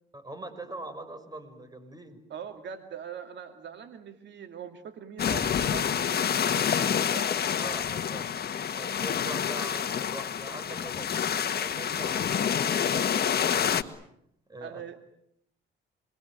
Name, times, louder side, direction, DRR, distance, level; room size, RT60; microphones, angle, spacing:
voice 1, 0.1-2.2 7.6-8.4 8.7-11.1 11.5-13.9 14.5-14.8, right 2 dB, 20° right, 8 dB, 6.1 m, -43 dB
voice 2, 2.3-7.3 14.6-15.0, right 7 dB, 65° right, 6 dB, 2.4 m, -42 dB
sound 1, 5.2-13.8, left 8 dB, 55° left, 1.8 m, -28 dB
27.5 x 22.5 x 9.0 m, 0.74 s
cardioid pair, 90°, 20 cm